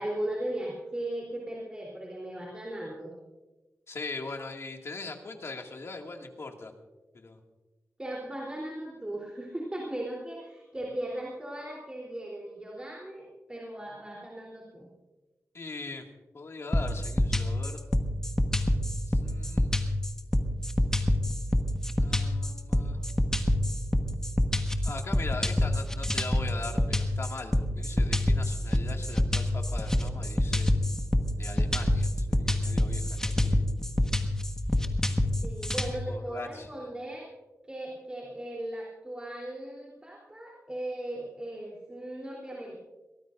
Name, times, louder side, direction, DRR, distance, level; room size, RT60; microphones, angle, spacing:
voice 1, 0.0-3.1 8.0-14.9 35.4-37.3 37.7-42.8, right 1 dB, 20° right, -3 dB, 3.4 m, -37 dB
voice 2, 3.9-6.7 7.1-7.4 15.5-16.1 16.3-17.8 19.1-19.7 22.0-23.0 24.8-30.7 31.3-33.7 36.1-36.9, left 3 dB, 55° left, 2 dB, 2.1 m, -41 dB
sound 1, 16.7-35.9, left 1 dB, 10° left, 1.4 m, -26 dB
23.0 x 18.0 x 2.6 m, 1.1 s
wide cardioid pair, 95°, 5 cm